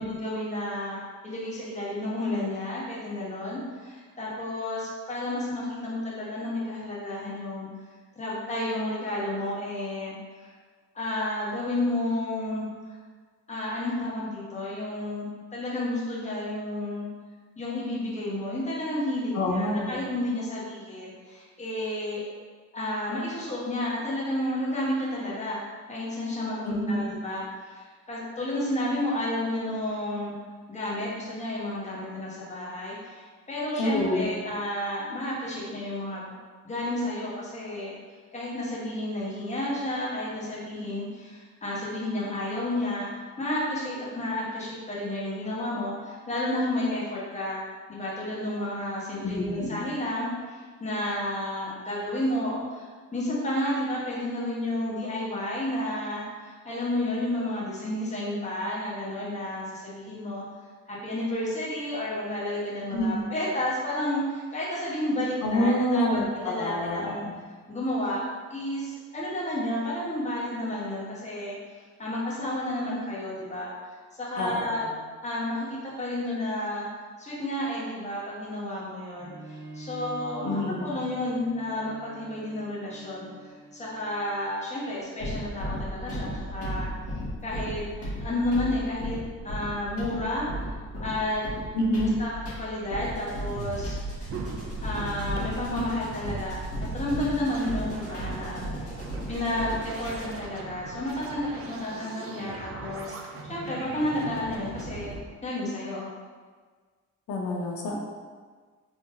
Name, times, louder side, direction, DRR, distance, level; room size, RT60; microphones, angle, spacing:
voice 1, 0.0-7.7 8.2-10.5 10.9-12.9 13.5-17.1 17.6-22.3 22.7-25.6 25.9-30.3 30.7-36.3 36.6-37.9 38.3-47.6 47.9-52.8 53.1-60.4 60.9-66.1 66.3-67.2 67.7-73.7 74.2-74.9 75.2-76.9 77.2-87.8 88.2-90.5 91.0-91.4 92.2-94.3 94.8-99.0 99.3-103.2 103.5-106.1, left 1 dB, 25° left, -5 dB, 1.1 m, -31 dB
voice 2, 19.3-20.0 26.7-27.1 33.8-34.3 49.1-49.9 62.9-63.2 65.4-67.3 74.4-75.0 80.4-80.9 91.7-92.1 107.3-108.0, left 1 dB, 70° left, 0 dB, 0.7 m, -27 dB
Bowed string instrument, 79.2-84.8, right 1 dB, 75° right, 0.9 m, -46 dB
sound 1, 85.2-100.5, equal, 50° left, 1.4 m, -36 dB
sound 2, 93.6-105.2, right 3 dB, 50° right, 0.5 m, -39 dB
3.6 x 3.4 x 2.6 m, 1.5 s
cardioid pair, 90°, 30 cm